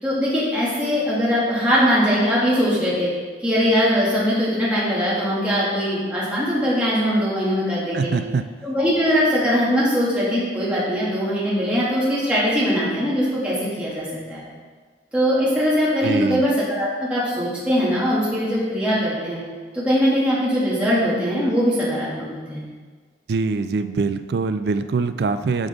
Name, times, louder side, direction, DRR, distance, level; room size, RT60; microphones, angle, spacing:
voice 1, 0.0-3.1 3.4-8.1 8.6-14.4 15.1-19.4 19.7-22.6, equal, 5° right, -8 dB, 1.8 m, -21 dB
voice 2, 7.9-8.5 16.0-16.4 23.3-25.7, right 4 dB, 65° right, 10 dB, 0.4 m, -23 dB
9.0 x 5.1 x 3.4 m, 1.5 s
head